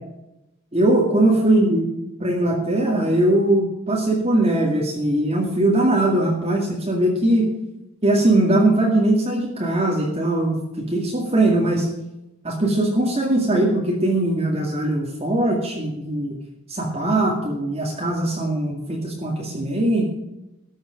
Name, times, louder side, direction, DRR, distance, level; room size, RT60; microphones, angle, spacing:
voice 1, 0.7-1.8 2.2-7.5 8.0-10.6 10.9-11.9 12.4-16.3 16.7-20.0, right 1 dB, 30° right, -2 dB, 2.2 m, -20 dB
14.0 x 6.5 x 7.6 m, 0.90 s
head